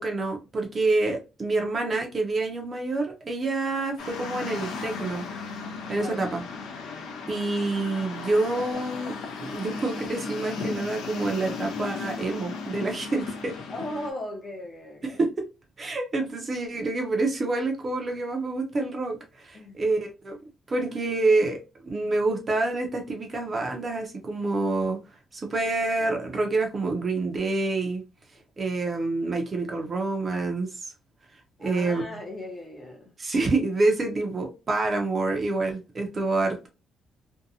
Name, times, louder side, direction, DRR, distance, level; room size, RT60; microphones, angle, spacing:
voice 1, 0.0-5.2 5.9-6.4 7.3-9.1 9.4-13.5 15.2-15.3 15.8-20.4 20.7-21.6 21.8-25.0 25.3-28.0 28.6-30.9 31.6-32.2 33.2-36.7, right 2 dB, 30° right, 0.5 m, -27 dB
sound 1, 4.0-14.1, left 4 dB, 80° left, 0.6 m, -36 dB
voice 2, 6.0-6.4 13.7-15.2 19.5-19.8 28.3-28.4 31.6-33.1, left 1 dB, 30° left, 0.7 m, -37 dB
2.7 x 2.2 x 2.6 m
cardioid pair, 150°, 0 cm